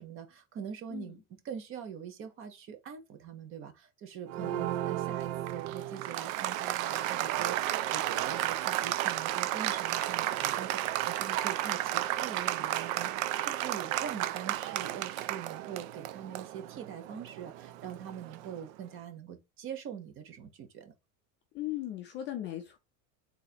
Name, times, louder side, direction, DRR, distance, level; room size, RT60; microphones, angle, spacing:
voice 1, 0.0-20.9, right 8 dB, 30° right, 0.8 m, -43 dB
Applause, 4.3-18.6, right 14 dB, 70° right, 0.6 m, -33 dB
voice 2, 21.5-22.8, left 13 dB, 25° left, 0.4 m, -38 dB
3.9 x 2.8 x 4.1 m
supercardioid pair, 160°, 42 cm